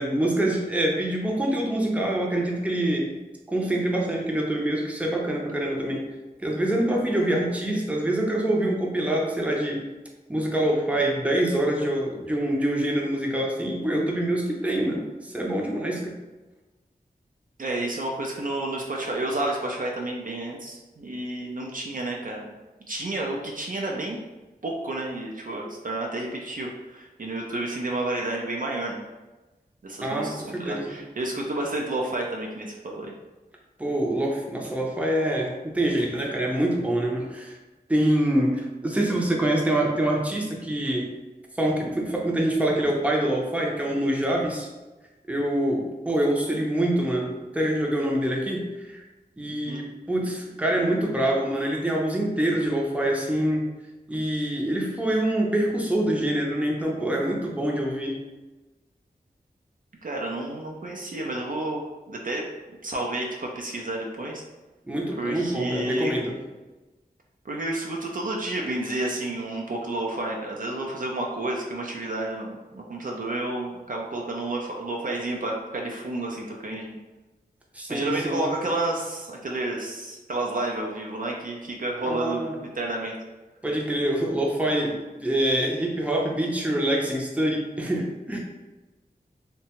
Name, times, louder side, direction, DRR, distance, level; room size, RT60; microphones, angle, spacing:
voice 1, 0.0-3.1 3.5-6.1 6.4-9.8 10.3-16.1 30.0-30.9 33.8-37.6 37.9-41.1 41.6-44.7 45.3-49.0 49.4-53.7 54.1-58.1 64.8-66.4 77.7-78.4 82.0-82.6 83.6-84.9 85.2-88.4, right 1 dB, 10° right, -1 dB, 0.6 m, -25 dB
voice 2, 17.6-22.6 22.9-24.2 24.6-29.0 29.8-33.1 49.7-49.8 60.0-62.5 62.8-64.4 65.2-66.1 67.4-77.0 77.9-82.4 82.7-83.2, right 2 dB, 55° right, -1 dB, 0.4 m, -30 dB
2.7 x 2.2 x 2.8 m, 1.1 s
wide cardioid pair, 45°, 17 cm